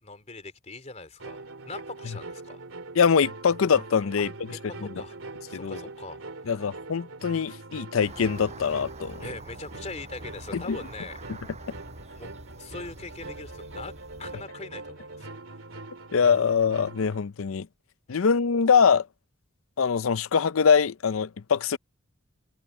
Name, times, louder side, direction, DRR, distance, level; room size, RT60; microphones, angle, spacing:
voice 1, 0.0-2.6 4.2-5.2 5.5-6.7 9.2-11.2 12.1-12.3 12.6-13.9 14.2-15.3 18.1-18.2, left 3 dB, 35° left, 3.4 m, -42 dB
sound 1, 1.2-17.2, right 3 dB, 70° right, 2.9 m, -42 dB
voice 2, 3.0-4.3 4.8-4.9 5.5-5.8 6.5-9.2 10.5-10.8 16.1-17.7 18.1-19.1 19.8-21.8, left 6 dB, 70° left, 0.5 m, -23 dB
sound 2, 8.0-14.4, right 2 dB, 30° right, 5.8 m, -46 dB
head